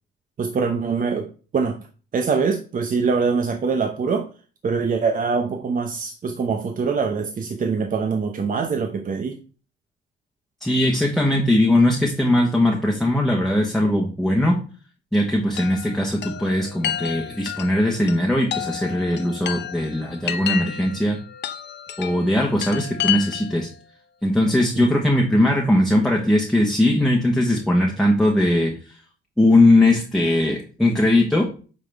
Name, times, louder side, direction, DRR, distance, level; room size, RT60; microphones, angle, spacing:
voice 1, 0.4-1.3 1.5-1.8 2.1-4.3 4.6-9.4 24.7-25.0, right 5 dB, 45° right, 4 dB, 0.8 m, -23 dB
voice 2, 10.6-14.6 15.1-21.2 22.0-23.7 24.2-28.7 29.4-31.5, left 1 dB, ahead, -1 dB, 1.2 m, -19 dB
Chime, 15.6-23.7, left 10 dB, 60° left, 0.7 m, -31 dB
8.9 x 3.8 x 3.5 m, 0.38 s
cardioid pair, 90°, 20 cm